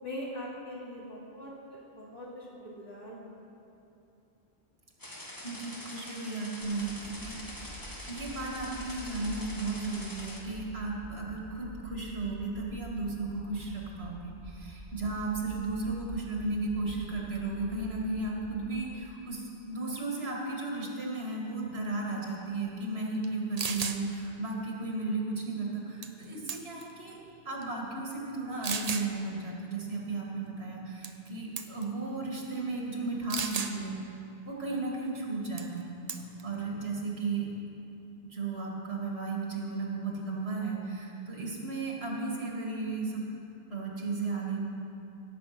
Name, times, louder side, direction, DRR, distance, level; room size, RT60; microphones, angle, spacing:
voice 1, 0.0-3.4, equal, 80° left, -6 dB, 3.1 m, -42 dB
sound 1, 5.0-10.4, left 1 dB, 20° left, 1.6 m, -44 dB
voice 2, 5.4-7.7 8.1-27.2 27.4-34.0 34.4-36.0 36.4-37.5 38.2-43.2 43.7-44.6, right 3 dB, 90° right, -2 dB, 2.4 m, -34 dB
sound 2, 6.6-18.7, equal, 50° left, 2.5 m, -47 dB
sound 3, 23.2-23.3 23.6-24.0 26.0-26.2 26.5-26.9 27.6-27.7 28.6-29.1 31.0-31.3 31.6-31.8 33.3-33.8 35.6-35.8 36.1-36.4, right 5 dB, 45° right, 0.7 m, -34 dB
17.0 x 7.6 x 6.0 m, 2.8 s
omnidirectional pair, 1.0 m